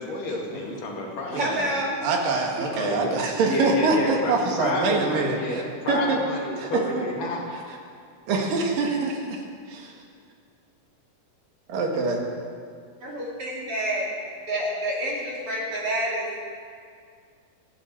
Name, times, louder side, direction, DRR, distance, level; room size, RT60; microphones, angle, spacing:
voice 1, 0.0-1.8 2.7-3.2 3.4-4.3 4.6-7.5, left 2 dB, 70° left, -1 dB, 3.8 m, -30 dB
voice 2, 1.4-2.1 13.0-14.1 14.5-16.4, right 1 dB, 40° right, -4 dB, 3.6 m, -28 dB
voice 3, 2.0-5.6 5.9-6.2 6.6-7.1 8.3-10.0 11.7-12.2, right 3 dB, 75° right, 1 dB, 3.6 m, -25 dB
26.0 x 11.0 x 4.6 m, 2.2 s
omnidirectional pair, 4.0 m